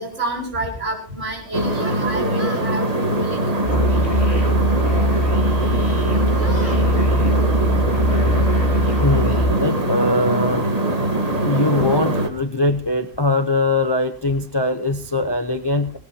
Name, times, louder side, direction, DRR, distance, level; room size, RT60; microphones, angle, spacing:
voice 1, 0.0-3.6, right 1 dB, 75° right, -1 dB, 5.2 m, -28 dB
sound 1, 1.5-12.3, right 1 dB, 30° right, 1.7 m, -22 dB
Yell, 1.8-2.7 3.6-4.5 5.5-6.9 7.7-8.7, equal, 10° right, 4.2 m, -40 dB
Musical instrument, 3.6-9.5, equal, 50° left, 4.1 m, -20 dB
voice 2, 9.0-10.7 11.3-16.0, left 2 dB, 25° left, 8 dB, 0.7 m, -21 dB
18.0 x 18.0 x 2.9 m, 0.39 s
omnidirectional pair, 1.3 m